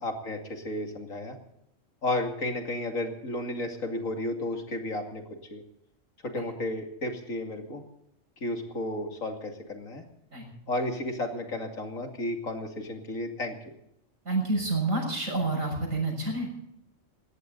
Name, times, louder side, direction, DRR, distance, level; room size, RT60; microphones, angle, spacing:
voice 1, 0.0-1.4 2.0-5.2 5.5-5.6 6.2-7.8 8.4-10.0 10.7-13.5, left 1 dB, 85° left, 4 dB, 3.0 m, -33 dB
voice 2, 14.3-16.5, right 2 dB, 80° right, 2 dB, 7.1 m, -28 dB
20.0 x 17.0 x 4.0 m, 0.79 s
omnidirectional pair, 1.4 m